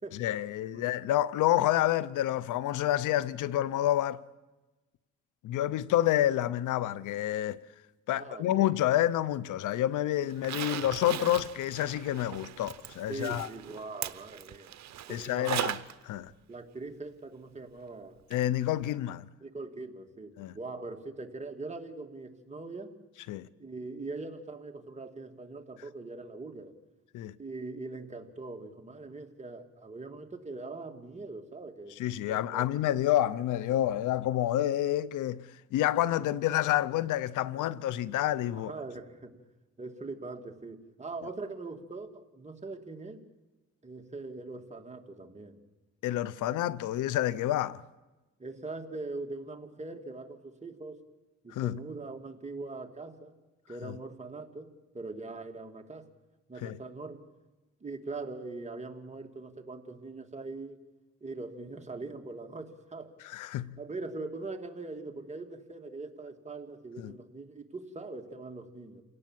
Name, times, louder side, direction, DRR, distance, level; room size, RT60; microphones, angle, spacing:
voice 1, 0.2-4.2 5.4-7.6 8.1-13.5 15.1-15.8 16.0-16.3 18.3-19.3 20.4-20.5 23.3-23.5 27.1-27.3 32.0-35.4 35.7-38.7 46.0-47.8 51.5-51.8 53.8-53.9 56.6-56.8 63.3-63.7 67.0-67.1, left 13 dB, 85° left, 0.8 m, -28 dB
voice 2, 8.2-8.7 13.1-14.7 15.1-15.5 16.5-18.2 19.4-22.9 23.6-26.7 27.4-32.0 32.3-32.7 38.5-39.4 39.8-43.2 43.8-45.6 48.4-51.0 51.4-53.3 53.7-56.1 56.5-57.2 57.8-60.8 61.2-63.1 63.8-69.0, right 3 dB, 25° right, 2.4 m, -42 dB
Zipper (clothing), 10.3-15.9 16.3-16.4 18.3-18.4 18.8-18.9, right 12 dB, 65° right, 1.0 m, -38 dB
28.5 x 17.5 x 7.5 m
cardioid pair, 90°, 30 cm